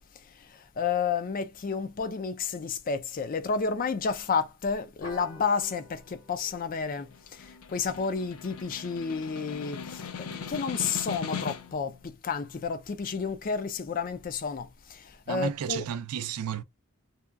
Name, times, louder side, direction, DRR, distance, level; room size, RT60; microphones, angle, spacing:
voice 1, 0.8-15.9, left 5 dB, 40° left, 0.4 m, -31 dB
sound 1, 5.0-9.9, left 1 dB, 55° left, 1.6 m, -51 dB
Snare drum, 7.0-11.9, left 6 dB, 90° left, 0.5 m, -39 dB
voice 2, 15.3-16.6, right 8 dB, 85° right, 0.4 m, -32 dB
2.8 x 2.2 x 2.4 m
head